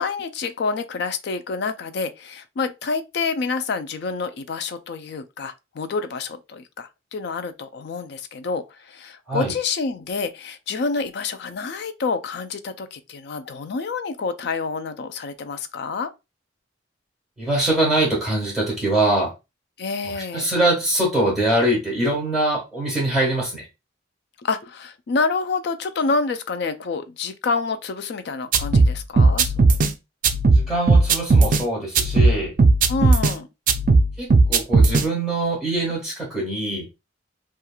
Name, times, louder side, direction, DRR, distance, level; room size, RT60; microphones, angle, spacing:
voice 1, 0.0-16.1 19.8-20.5 24.4-29.5 32.9-33.5, left 4 dB, 55° left, 0.3 m, -28 dB
voice 2, 17.4-19.3 20.1-23.7 30.5-32.6 34.2-36.9, right 1 dB, 5° left, 1.3 m, -23 dB
sound 1, 28.5-29.9 30.2-31.6 31.9-33.3 33.7-35.0, right 3 dB, 45° right, 0.3 m, -16 dB
2.9 x 2.4 x 2.3 m
head